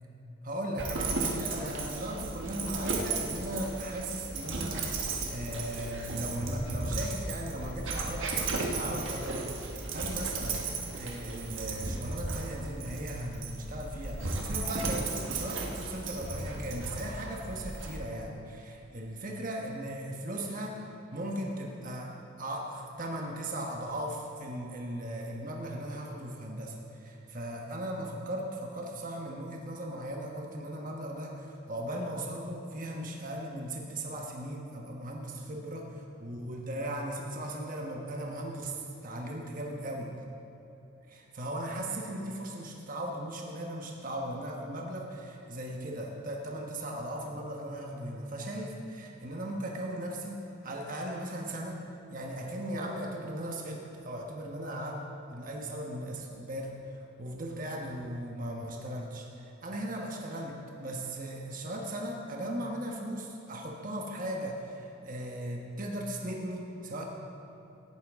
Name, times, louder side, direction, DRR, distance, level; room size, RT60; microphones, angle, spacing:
voice 1, 0.4-9.4 9.9-20.8 21.1-22.1 22.4-40.1 41.1-51.8 52.1-55.0 55.3-56.8 57.2-67.0, right 1 dB, 40° right, 0 dB, 1.2 m, -37 dB
Dog, 0.8-18.0, right 3 dB, 65° right, 1.3 m, -35 dB
17.5 x 9.1 x 3.6 m, 3.0 s
head